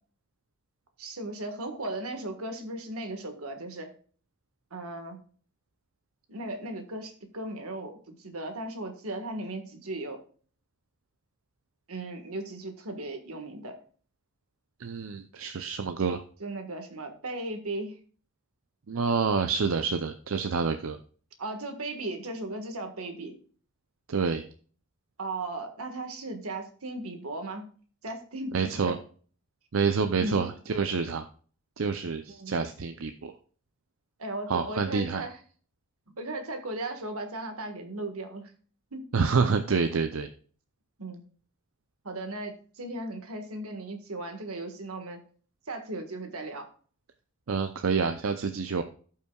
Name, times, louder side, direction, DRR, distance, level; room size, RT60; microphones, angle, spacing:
voice 1, 1.0-3.9 4.7-5.2 6.3-10.2 11.9-13.8 16.4-17.9 21.4-23.3 25.2-27.7 28.0-28.9 30.2-30.5 32.3-32.6 34.2-35.4 36.2-38.5 38.9-39.0 41.0-41.2 42.0-45.2 45.7-46.7, right 2 dB, 85° right, 5 dB, 1.6 m, -36 dB
voice 2, 14.8-16.2 18.9-21.0 24.1-24.5 28.5-28.9 29.7-31.2 31.8-33.3 34.5-35.2 39.1-40.3 47.5-48.8, right 5 dB, 70° right, 8 dB, 0.5 m, -27 dB
16.5 x 5.6 x 2.3 m, 0.44 s
head